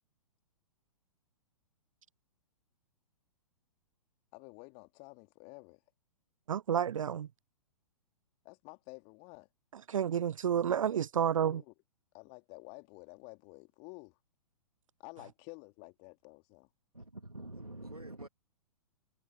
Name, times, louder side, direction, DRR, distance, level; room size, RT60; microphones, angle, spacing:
voice 1, 4.3-5.8 8.4-9.5 11.4-11.7 12.1-14.2 15.0-16.7, left 34 dB, 30° left, 2.7 m, -51 dB
voice 2, 6.5-7.3 9.9-11.6, right 9 dB, 60° right, 0.4 m, -30 dB
voice 3, 16.9-18.3, right 2 dB, 85° right, 2.5 m, -46 dB
figure-of-eight pair, 110°, 19 cm